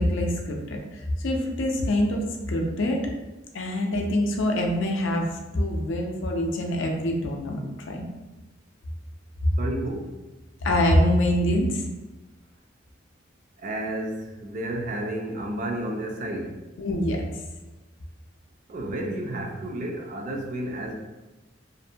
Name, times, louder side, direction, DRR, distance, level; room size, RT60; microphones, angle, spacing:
voice 1, 0.0-3.0 3.5-7.6 7.9-8.0 10.6-11.8 16.8-17.2, left 1 dB, 85° left, 1 dB, 0.5 m, -25 dB
voice 2, 9.6-10.1 13.6-16.6 18.7-20.9, right 1 dB, 40° right, 2 dB, 0.3 m, -31 dB
2.6 x 2.1 x 2.5 m, 1.1 s
head